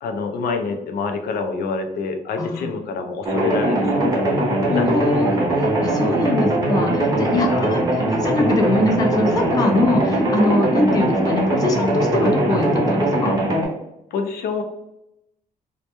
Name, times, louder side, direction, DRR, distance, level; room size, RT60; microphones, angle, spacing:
voice 1, 0.0-4.4 4.7-4.9 7.3-7.8 14.1-14.6, left 4 dB, 90° left, 6 dB, 0.4 m, -27 dB
voice 2, 2.4-2.7 4.7-13.3, left 2 dB, 25° left, 3 dB, 0.3 m, -22 dB
sound 1, 3.2-13.7, right 1 dB, 25° right, 0.6 m, -20 dB
2.2 x 2.1 x 2.8 m, 0.85 s
cardioid pair, 150°, 15 cm